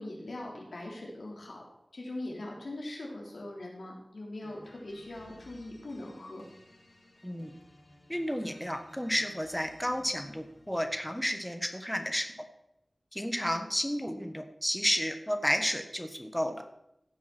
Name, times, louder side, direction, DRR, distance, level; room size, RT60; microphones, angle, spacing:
voice 1, 0.0-1.6 1.9-6.5 13.4-13.6, left 1 dB, 90° left, -2 dB, 3.3 m, -41 dB
sound 1, 4.4-11.1, left 1 dB, 60° left, 3.3 m, -57 dB
voice 2, 8.1-12.3 13.1-16.6, equal, 5° left, 6 dB, 1.2 m, -32 dB
15.5 x 5.9 x 6.0 m, 0.81 s
wide cardioid pair, 60°, 0 cm